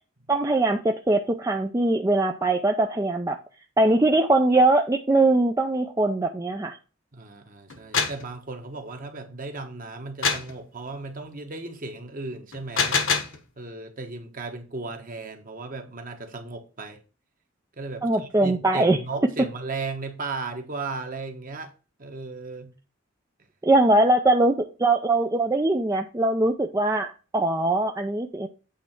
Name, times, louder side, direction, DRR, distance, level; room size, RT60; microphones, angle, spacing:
voice 1, 0.3-3.4 3.8-6.7 18.0-19.0 23.6-28.5, right 2 dB, 15° right, 0.5 m, -21 dB
voice 2, 7.1-13.1 13.6-17.0 17.8-21.7 22.0-22.7, right 3 dB, 40° right, 1.2 m, -36 dB
sound 1, 7.7-8.3 10.2-10.5 12.5-13.4, left 5 dB, 65° left, 1.2 m, -24 dB
8.4 x 3.3 x 6.0 m
head